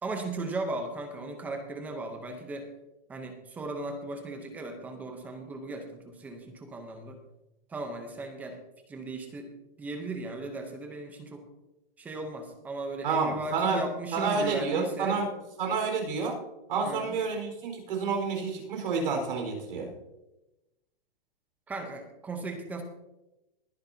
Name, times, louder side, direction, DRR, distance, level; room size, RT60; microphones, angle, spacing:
voice 1, 0.0-2.7 3.1-7.2 7.7-8.6 8.9-9.5 9.8-11.4 12.0-15.3 16.8-17.2 21.7-22.8, right 2 dB, 5° right, 5 dB, 0.7 m, -37 dB
voice 2, 13.0-13.8 14.1-15.3 15.6-16.4 16.7-19.9, right 4 dB, 65° right, 2 dB, 4.4 m, -29 dB
20.5 x 9.8 x 2.7 m, 0.97 s
hypercardioid pair, 175°, 30 cm